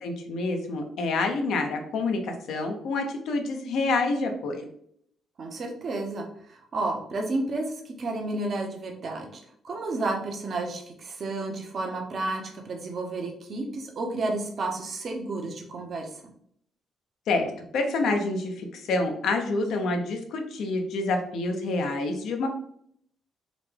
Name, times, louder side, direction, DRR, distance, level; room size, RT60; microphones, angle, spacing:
voice 1, 0.0-4.7 17.3-22.5, left 3 dB, 75° left, 4 dB, 0.6 m, -27 dB
voice 2, 5.4-16.1, right 2 dB, 50° right, 2 dB, 0.8 m, -31 dB
3.9 x 2.2 x 3.3 m, 0.66 s
cardioid pair, 90°, 0 cm